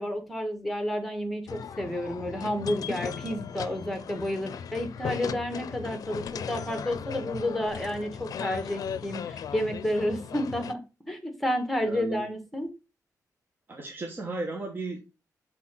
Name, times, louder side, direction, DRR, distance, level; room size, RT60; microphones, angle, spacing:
voice 1, 0.0-10.8 11.0-12.7, left 1 dB, ahead, 6 dB, 1.6 m, -31 dB
sound 1, 1.5-10.7, left 7 dB, 70° left, 0.5 m, -37 dB
voice 2, 11.8-12.3 13.7-15.0, right 2 dB, 35° right, 1 dB, 1.2 m, -34 dB
6.1 x 4.1 x 5.7 m, 0.28 s
wide cardioid pair, 135°, 6 cm